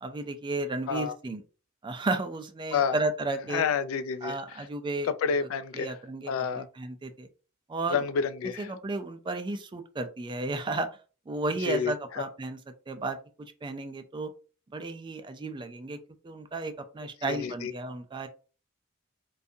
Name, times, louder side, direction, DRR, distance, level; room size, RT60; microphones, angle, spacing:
voice 1, 0.0-1.4 1.8-3.6 4.2-5.1 5.7-7.3 7.7-8.1 8.6-10.9 11.3-12.6 12.9-14.3 14.7-16.0 16.2-18.3, right 2 dB, 25° right, 0.3 m, -33 dB
voice 2, 3.5-4.3 5.0-5.9 6.3-6.7 7.9-8.7 11.7-11.9 17.2-17.7, left 6 dB, 90° left, 0.3 m, -29 dB
2.6 x 2.3 x 2.6 m
head